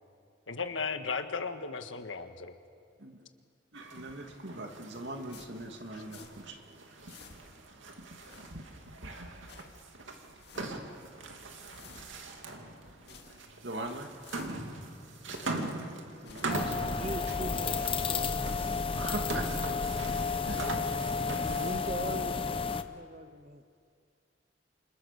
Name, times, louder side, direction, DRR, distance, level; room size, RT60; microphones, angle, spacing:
voice 1, 0.5-2.5, left 5 dB, 90° left, 7 dB, 1.7 m, -35 dB
voice 2, 3.7-6.6 8.1-8.2 13.6-14.1 16.2-17.1 18.9-19.7 20.4-20.6 21.2-21.6, right 2 dB, 65° right, 3 dB, 2.5 m, -41 dB
sound 1, 3.7-21.9, right 2 dB, 85° right, 2.6 m, -42 dB
sound 2, 5.3-6.6 6.8-7.7 8.1-8.9 9.2-9.8 10.2-10.9 11.3-12.4 12.8-13.7 14.0-15.8 16.1-16.7, left 5 dB, 60° left, 2.4 m, -55 dB
sound 3, 16.5-22.8, left 5 dB, 30° left, 0.9 m, -32 dB
voice 3, 16.9-19.1 21.4-23.6, right 1 dB, 35° right, 10 dB, 1.0 m, -42 dB
28.0 x 26.5 x 7.0 m, 2.3 s
head